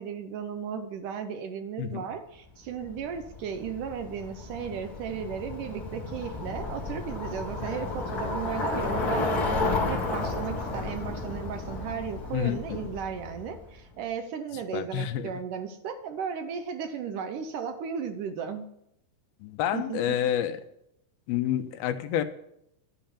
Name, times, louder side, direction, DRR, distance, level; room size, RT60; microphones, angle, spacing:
voice 1, 0.0-18.7 19.7-20.2, right 7 dB, 70° right, 8 dB, 2.2 m, -35 dB
Bicycle, 2.8-13.7, left 3 dB, 30° left, 2.0 m, -32 dB
voice 2, 14.7-15.3 19.4-20.6 21.3-22.2, left 10 dB, 80° left, 9 dB, 2.7 m, -28 dB
11.5 x 9.1 x 7.2 m, 0.77 s
omnidirectional pair, 4.4 m